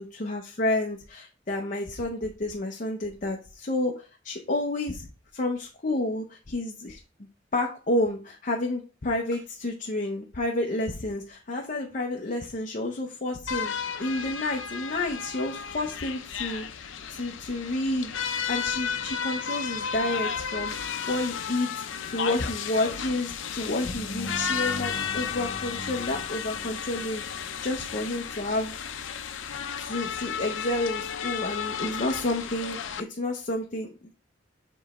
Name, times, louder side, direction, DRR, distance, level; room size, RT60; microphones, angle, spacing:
voice 1, 0.0-7.0 7.5-13.7 14.0-20.8 21.1-28.8 29.7-33.9, left 2 dB, 45° left, 1 dB, 0.8 m, -30 dB
sound 1, 13.5-33.0, left 7 dB, 90° left, 0.6 m, -33 dB
sound 2, 23.8-28.4, left 1 dB, 70° left, 1.1 m, -40 dB
7.3 x 3.1 x 4.2 m, 0.33 s
head